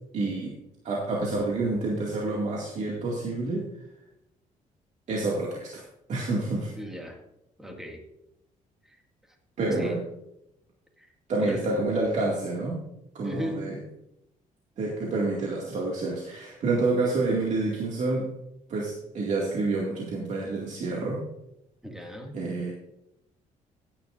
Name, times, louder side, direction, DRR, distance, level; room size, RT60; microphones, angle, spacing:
voice 1, 0.1-0.6 0.8-3.7 5.1-6.7 9.6-10.0 11.3-12.8 13.1-13.8 14.8-18.3 18.7-21.3 22.3-22.7, right 2 dB, 60° right, -3 dB, 2.3 m, -28 dB
voice 2, 6.8-7.2 7.6-8.0 8.8-9.0 9.8-9.9 11.0-11.1 11.4-11.6 13.2-13.6 21.8-22.4, equal, 5° right, 2 dB, 2.1 m, -36 dB
15.5 x 10.5 x 2.6 m, 0.84 s
cardioid pair, 125°, 14 cm